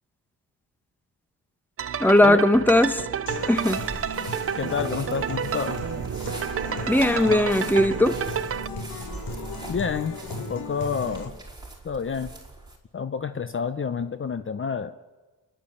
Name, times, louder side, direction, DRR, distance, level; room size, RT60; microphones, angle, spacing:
sound 1, 1.8-8.7, right 8 dB, 40° right, 0.7 m, -30 dB
voice 1, 2.0-3.0 3.5-3.8 6.9-8.2, left 1 dB, 5° left, 12 dB, 1.2 m, -19 dB
Human voice / Acoustic guitar, 3.3-11.2, left 2 dB, 75° left, 3.9 m, -36 dB
sound 2, 3.3-12.8, right 2 dB, 10° right, 5.2 m, -42 dB
voice 2, 4.6-5.8 9.7-10.2 10.5-11.3 11.8-12.3 12.9-14.9, left 6 dB, 35° left, 11 dB, 0.8 m, -28 dB
28.5 x 11.5 x 8.6 m, 1.2 s
cardioid pair, 80°, 35 cm